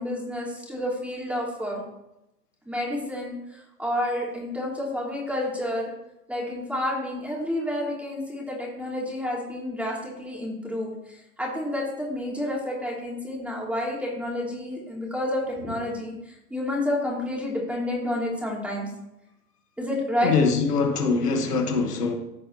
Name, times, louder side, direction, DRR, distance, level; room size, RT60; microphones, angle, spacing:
voice 1, 0.0-1.8 2.7-5.9 6.3-18.9 19.8-20.3, left 1 dB, 5° right, 2.8 m, -30 dB
voice 2, 20.2-22.1, left 4 dB, 85° left, 1.5 m, -23 dB
15.0 x 5.3 x 3.0 m
hypercardioid pair, 110°, 46 cm